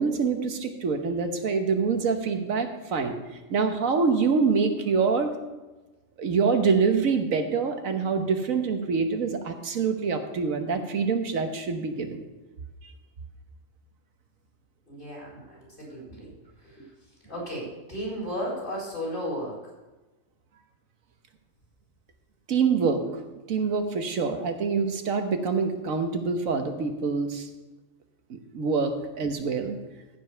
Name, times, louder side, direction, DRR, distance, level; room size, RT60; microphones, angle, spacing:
voice 1, 0.0-3.2 3.5-5.3 6.2-12.2 22.5-23.0 23.5-27.5 28.3-29.8, right 5 dB, 85° right, 6 dB, 1.5 m, -25 dB
voice 2, 14.9-16.3 16.6-19.6, equal, 40° left, -4 dB, 4.5 m, -35 dB
14.5 x 5.3 x 6.6 m, 1.1 s
omnidirectional pair, 1.4 m